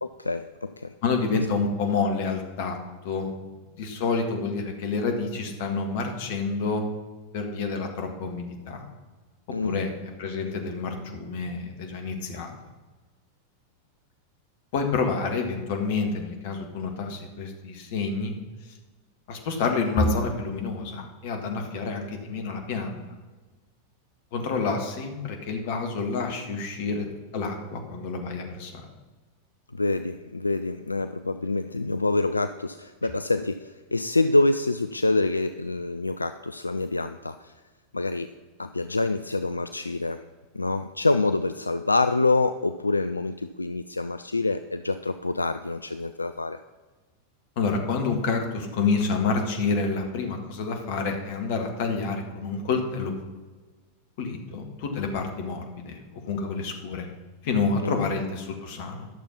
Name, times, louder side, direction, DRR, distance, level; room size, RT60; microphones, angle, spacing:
voice 1, 0.0-0.9 9.5-9.8 29.7-37.5 37.9-38.3 38.6-40.2 40.5-46.6 57.8-58.0, left 2 dB, 80° left, 10 dB, 0.3 m, -26 dB
voice 2, 1.0-2.8 3.0-3.3 3.8-6.8 7.3-8.9 9.6-12.5 14.7-18.3 19.3-23.0 24.3-27.0 27.3-28.9 47.6-53.1 54.2-57.1 57.4-59.1, left 4 dB, 50° left, 4 dB, 1.8 m, -28 dB
11.0 x 6.9 x 5.4 m, 1.3 s
figure-of-eight pair, 90°, 0 cm